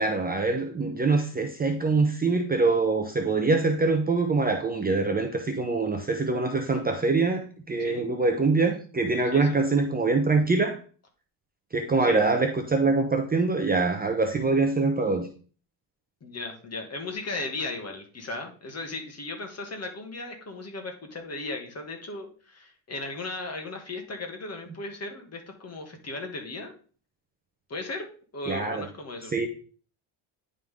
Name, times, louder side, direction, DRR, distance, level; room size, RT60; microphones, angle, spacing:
voice 1, 0.0-10.8 11.7-15.3 28.5-28.8 29.3-29.5, right 3 dB, 20° right, 4 dB, 0.8 m, -24 dB
voice 2, 9.3-9.6 12.0-12.2 16.2-26.7 27.7-28.1 28.3-29.3, left 2 dB, 30° left, 3 dB, 2.0 m, -36 dB
10.5 x 4.0 x 3.6 m, 0.40 s
supercardioid pair, 95°, 50 cm